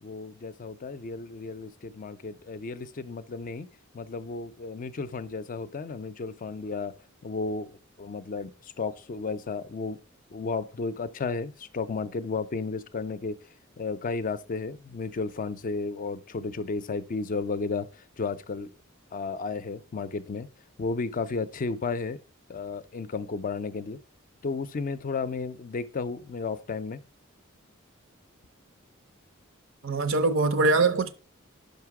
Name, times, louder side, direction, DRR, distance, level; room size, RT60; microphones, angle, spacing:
voice 1, 0.0-3.7 3.9-7.0 7.2-10.0 10.3-13.4 13.8-17.9 18.2-18.7 19.1-20.5 20.8-22.2 22.5-24.0 24.4-27.0, left 4 dB, 40° left, 0.4 m, -33 dB
voice 2, 29.8-31.1, right 3 dB, 65° right, 0.6 m, -23 dB
5.7 x 5.3 x 4.7 m
head